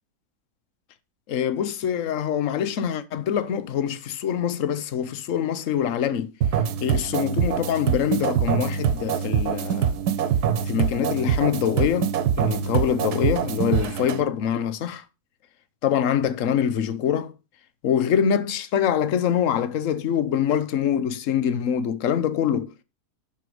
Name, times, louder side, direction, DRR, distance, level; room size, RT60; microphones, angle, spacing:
voice 1, 1.3-6.3 6.8-10.0 10.7-15.0 15.8-17.3 17.8-22.7, left 9 dB, 55° left, 1.2 m, -24 dB
sound 1, 6.4-14.2, right 8 dB, 75° right, 1.4 m, -24 dB
11.5 x 6.1 x 4.8 m
omnidirectional pair, 1.7 m